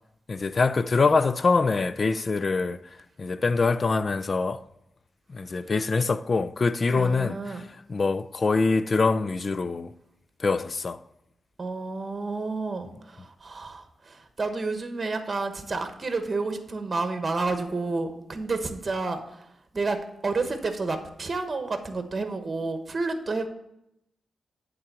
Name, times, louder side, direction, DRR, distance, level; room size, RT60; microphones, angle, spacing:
voice 1, 0.3-2.8 3.2-4.6 5.3-7.6 7.9-9.9 10.4-11.0, left 4 dB, 50° left, 0.4 m, -24 dB
voice 2, 7.0-7.6 11.6-19.5 19.7-23.5, right 3 dB, 40° right, 1.1 m, -30 dB
8.6 x 3.9 x 6.9 m
cardioid pair, 65°, 0 cm